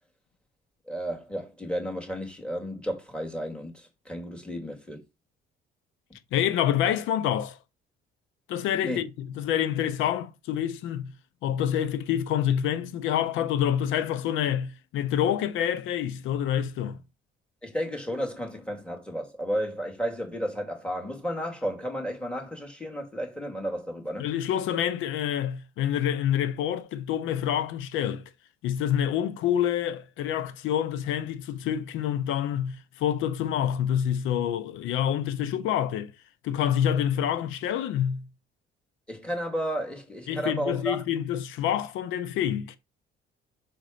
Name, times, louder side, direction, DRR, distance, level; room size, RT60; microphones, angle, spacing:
voice 1, 0.9-5.0 8.8-9.0 17.6-24.3 39.1-41.0, equal, 5° left, 2.3 m, -33 dB
voice 2, 6.3-7.6 8.5-11.1 11.4-17.0 24.2-28.2 28.6-36.1 36.4-38.2 40.3-42.8, left 10 dB, 90° left, 0.9 m, -27 dB
6.1 x 4.0 x 5.1 m
cardioid pair, 125°, 20 cm